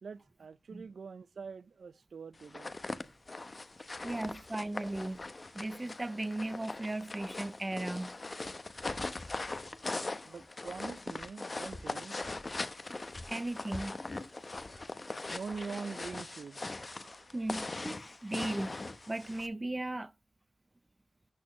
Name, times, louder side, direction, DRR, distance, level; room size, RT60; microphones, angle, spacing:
voice 1, 0.0-2.7 3.8-4.0 10.2-12.2 14.5-14.9 15.3-17.7, right 5 dB, 80° right, 0.4 m, -45 dB
sound 1, 2.4-19.5, left 2 dB, 40° left, 0.9 m, -41 dB
voice 2, 4.0-5.2 5.5-8.2 8.9-9.2 13.3-14.0 17.3-18.7 19.1-20.1, right 2 dB, 25° right, 0.5 m, -37 dB
13.0 x 4.3 x 3.1 m
cardioid pair, 65°, 0 cm